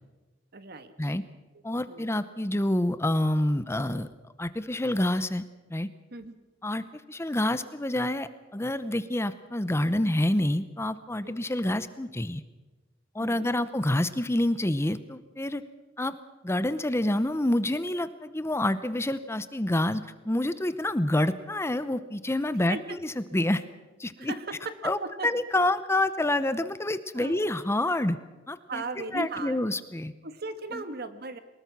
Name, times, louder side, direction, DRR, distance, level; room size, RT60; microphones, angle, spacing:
voice 1, 0.5-1.2 1.7-2.1 6.1-6.3 11.2-11.4 13.2-13.5 22.7-23.0 24.2-24.7 25.0-25.3 25.6-25.7 27.2-27.4 28.7-29.6 30.2-31.4, right 3 dB, 60° right, 10 dB, 1.7 m, -37 dB
voice 2, 1.6-4.1 4.4-5.4 5.7-5.9 6.6-12.4 13.1-15.6 16.0-16.2 16.4-23.6 24.0-24.3 24.8-28.2 28.5-28.8 29.1-30.1 30.7-30.8, left 1 dB, 15° left, 13 dB, 0.7 m, -27 dB
23.0 x 20.5 x 6.1 m, 1.2 s
head